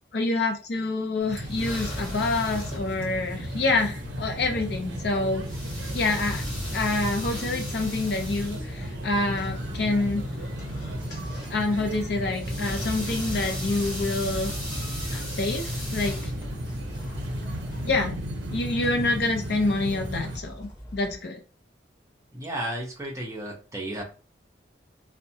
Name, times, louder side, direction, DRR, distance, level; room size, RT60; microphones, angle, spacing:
voice 1, 0.1-5.5 5.9-6.4 6.7-10.2 11.5-14.5 15.1-16.3 17.8-18.2 18.5-21.4, left 2 dB, 55° left, 4 dB, 0.5 m, -27 dB
sound 1, 1.2-17.9, left 1 dB, 5° left, 1.0 m, -37 dB
sound 2, 1.3-20.4, equal, 70° right, 0.5 m, -35 dB
sound 3, 3.1-21.2, equal, 20° left, 1.2 m, -45 dB
voice 2, 22.3-24.0, right 1 dB, 15° right, -2 dB, 0.6 m, -33 dB
2.6 x 2.1 x 2.7 m, 0.37 s
head